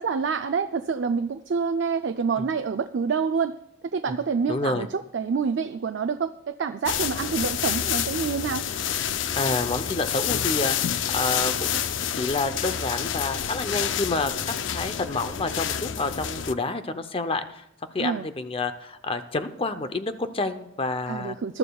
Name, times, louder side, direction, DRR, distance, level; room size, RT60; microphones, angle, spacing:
voice 1, 0.0-3.5 3.9-8.6 18.0-18.3 21.1-21.6, right 5 dB, 70° right, 8 dB, 0.4 m, -27 dB
voice 2, 4.5-4.9 9.4-11.9 12.1-17.6 17.9-21.4, left 2 dB, 30° left, 10 dB, 0.7 m, -29 dB
sound 1, 6.9-16.5, left 9 dB, 80° left, 0.5 m, -28 dB
21.0 x 12.0 x 2.3 m, 0.83 s
head